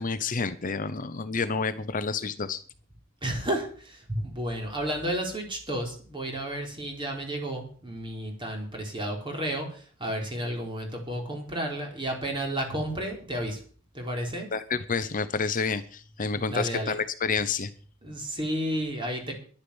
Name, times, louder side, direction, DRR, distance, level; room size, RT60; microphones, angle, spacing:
voice 1, 0.0-2.6 14.5-17.7, left 5 dB, 40° left, 12 dB, 0.8 m, -29 dB
voice 2, 3.2-13.6 13.9-14.5 16.4-16.9 18.0-19.3, right 1 dB, 25° right, 2 dB, 4.0 m, -32 dB
11.5 x 10.0 x 7.1 m, 0.43 s
head